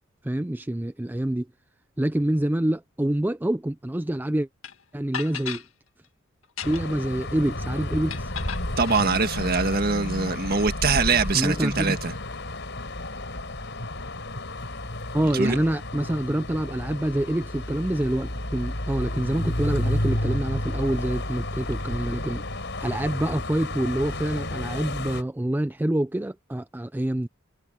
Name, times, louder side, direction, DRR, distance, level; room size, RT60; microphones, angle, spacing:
voice 1, 0.2-1.5 2.0-4.5 4.9-5.6 6.6-8.3 11.3-12.0 15.1-22.4 22.8-27.3, right 1 dB, 10° right, 0.4 m, -26 dB
sound 1, 4.6-4.7 5.1-5.7 6.4-7.0 8.1-9.1, left 8 dB, 85° left, 2.1 m, -35 dB
sound 2, 6.6-25.2, left 1 dB, 60° left, 6.3 m, -31 dB
voice 2, 8.8-12.1 15.3-15.6, right 4 dB, 50° right, 1.6 m, -23 dB
head